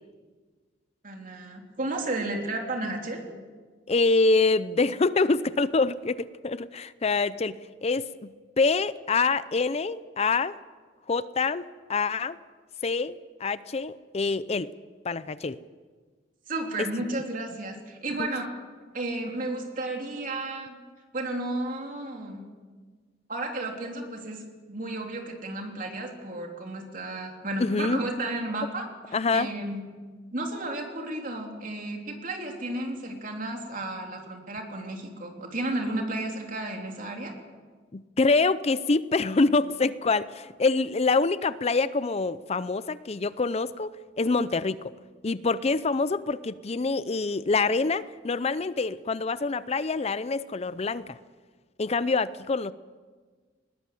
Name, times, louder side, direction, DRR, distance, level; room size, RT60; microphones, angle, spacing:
voice 1, 1.0-3.2 16.5-18.5 18.9-20.8 21.1-22.5 23.3-29.8 30.3-37.3, right 2 dB, 45° right, 2 dB, 3.3 m, -33 dB
voice 2, 3.9-8.3 8.6-10.6 11.1-12.4 12.8-14.7 15.0-15.6 16.8-16.9 18.2-18.3 27.6-28.0 29.1-29.5 37.9-44.9 45.2-51.2 51.8-52.7, left 3 dB, 35° left, 16 dB, 0.5 m, -26 dB
20.5 x 19.0 x 7.7 m, 1.4 s
head